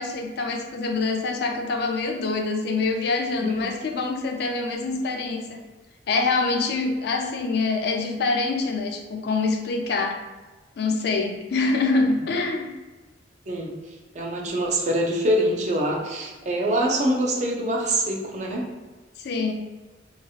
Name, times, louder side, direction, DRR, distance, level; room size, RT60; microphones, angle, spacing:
voice 1, 0.0-5.6 6.1-10.2 10.8-12.7 19.2-19.5, left 3 dB, 60° left, 3 dB, 0.3 m, -25 dB
voice 2, 3.4-3.7 13.5-13.8 14.1-18.7, right 1 dB, 40° right, -2 dB, 0.5 m, -24 dB
2.8 x 2.7 x 2.3 m, 1.3 s
head